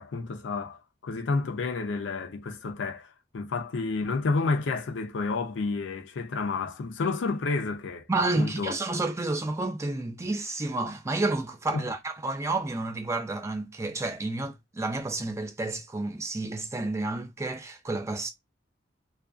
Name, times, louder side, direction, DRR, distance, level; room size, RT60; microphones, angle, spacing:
voice 1, 0.0-8.1 8.4-8.7 11.7-11.8, left 3 dB, 80° left, 0.5 m, -30 dB
voice 2, 8.1-18.3, right 2 dB, 15° right, 0.3 m, -30 dB
2.4 x 2.2 x 2.4 m
head